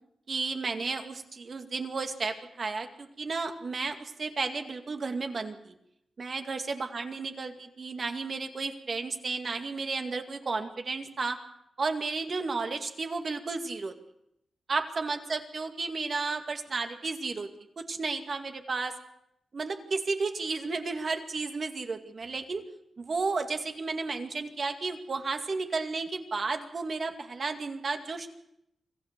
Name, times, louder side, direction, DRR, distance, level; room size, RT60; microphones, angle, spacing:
voice 1, 0.3-5.8 6.2-11.4 11.8-13.9 14.7-17.5 17.8-18.9 19.5-22.6 23.0-28.3, right 4 dB, 50° right, 5 dB, 2.2 m, -33 dB
25.5 x 15.0 x 6.8 m, 0.77 s
cardioid pair, 90°, 0 cm